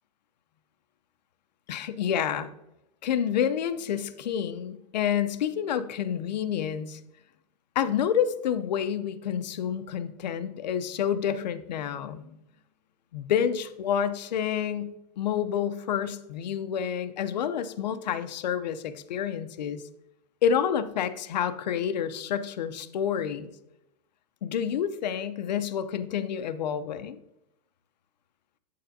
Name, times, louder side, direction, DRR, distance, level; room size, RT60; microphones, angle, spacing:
voice 1, 1.7-2.5 3.0-7.0 7.8-12.2 13.1-19.8 20.4-23.5 24.4-27.2, left 8 dB, 85° left, 11 dB, 0.6 m, -29 dB
9.0 x 6.7 x 2.7 m, 0.87 s
supercardioid pair, 170°, 21 cm